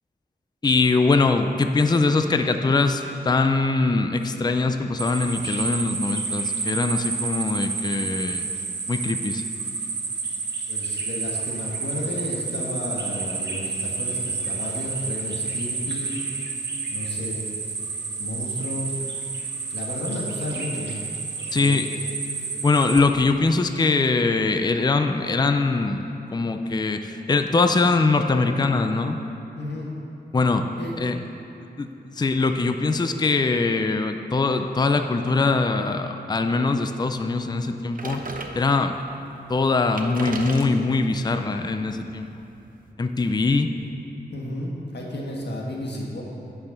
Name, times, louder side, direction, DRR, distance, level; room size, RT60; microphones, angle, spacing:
voice 1, 0.6-8.5 8.9-9.4 21.5-21.9 22.6-26.0 26.3-29.2 30.3-30.7 31.0-31.2 31.8-38.2 38.6-39.0 39.5-42.3 43.0-43.7, left 3 dB, 25° left, 7 dB, 0.4 m, -22 dB
sound 1, 5.0-23.0, right 4 dB, 75° right, 1.1 m, -30 dB
voice 2, 10.7-16.2 16.9-17.4 17.9-19.0 19.7-21.0 21.5-21.9 29.5-29.9 30.8-31.0 44.3-46.2, left 1 dB, 75° left, -3 dB, 1.5 m, -32 dB
sound 2, 38.0-39.0 39.6-39.7 39.9-42.9, right 3 dB, 50° right, 0.8 m, -37 dB
9.5 x 5.6 x 6.6 m, 2.7 s
wide cardioid pair, 105°, 18 cm